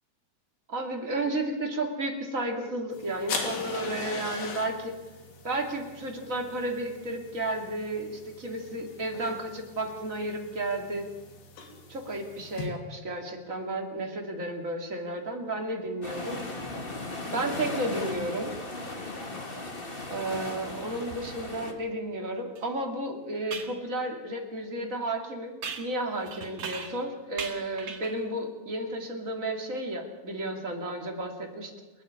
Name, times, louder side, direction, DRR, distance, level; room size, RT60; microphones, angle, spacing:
voice 1, 0.7-4.9 5.4-11.1 11.9-16.4 17.3-18.5 20.1-31.7, right 1 dB, 25° right, 2 dB, 2.0 m, -32 dB
sound 1, 2.9-12.7, left 4 dB, 80° left, 5.1 m, -41 dB
sound 2, 16.0-21.7, left 2 dB, 35° left, 0.8 m, -37 dB
sound 3, 22.5-22.6 23.5-23.8 25.6-27.1 27.4-28.3, right 5 dB, 45° right, 2.4 m, -38 dB
29.5 x 9.9 x 9.6 m, 1.2 s
omnidirectional pair, 4.8 m